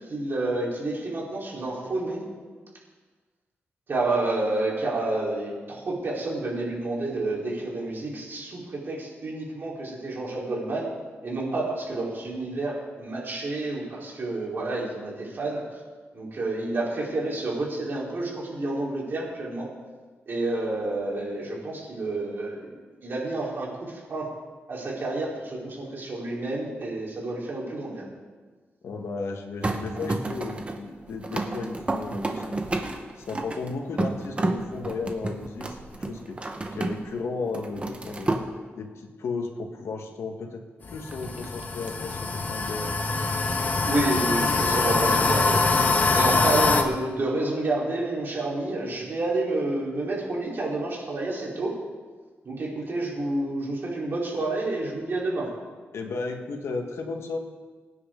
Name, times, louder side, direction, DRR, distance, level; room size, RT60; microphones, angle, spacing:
voice 1, 0.1-2.2 3.9-10.9 11.2-15.6 16.1-19.7 20.3-22.7 23.0-24.3 24.7-28.0 43.9-45.7 46.1-51.7 52.4-55.5, right 2 dB, 55° right, -4 dB, 4.3 m, -29 dB
voice 2, 28.8-35.8 36.1-36.4 36.7-38.3 38.8-43.0 46.3-46.5 55.9-57.4, left 4 dB, 85° left, 3 dB, 1.7 m, -34 dB
sound 1, 29.6-37.2 37.4-38.4 41.1-41.9, right 2 dB, 25° right, 1.3 m, -31 dB
sound 2, 40.8-46.8, left 3 dB, 45° left, 1.4 m, -24 dB
23.5 x 9.7 x 3.9 m, 1.4 s
wide cardioid pair, 120°, 4 cm